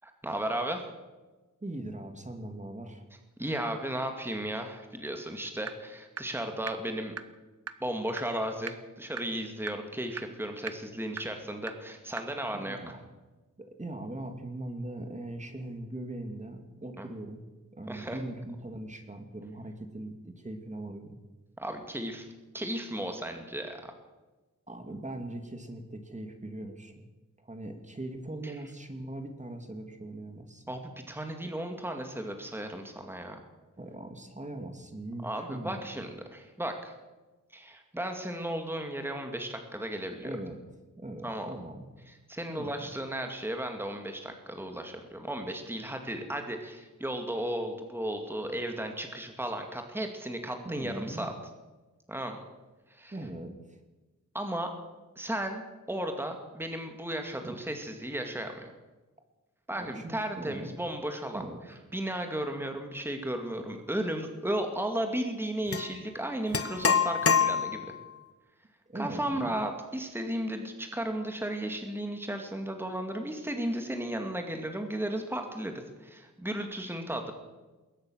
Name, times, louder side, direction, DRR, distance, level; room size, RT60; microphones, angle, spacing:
voice 1, 0.0-0.9 3.4-7.1 7.8-12.8 17.0-17.1 17.9-18.2 21.6-22.3 22.5-23.8 28.4-28.5 30.7-33.4 35.2-36.9 37.5-40.4 41.2-41.5 42.1-51.3 52.1-52.4 52.9-53.1 54.3-54.7 55.2-55.6 55.9-58.7 59.7-61.4 61.7-67.8 68.9-77.3, right 1 dB, 5° right, 5 dB, 2.4 m, -35 dB
voice 2, 1.6-3.0 12.5-13.0 13.6-17.4 17.7-21.2 24.7-27.1 27.4-30.6 33.8-36.0 40.2-40.6 41.0-41.9 42.5-43.0 50.6-51.3 53.1-53.8 57.4-57.6 59.8-60.8 61.3-61.6 68.9-69.5, right 1 dB, 20° right, 5 dB, 2.6 m, -40 dB
sound 1, 5.7-5.8 6.2-6.3 6.7-6.8 7.2-7.3 7.7-7.8 8.2-8.3 8.7-8.8 9.2-9.3 9.7-9.8 10.2-10.3 10.7-10.8 11.2-11.3 11.7-11.8 12.2-12.3, right 6 dB, 50° right, 1.3 m, -35 dB
sound 2, 65.7-65.9 66.5-68.0, left 6 dB, 45° left, 1.4 m, -26 dB
21.5 x 18.5 x 6.5 m, 1.2 s
wide cardioid pair, 100°, 32 cm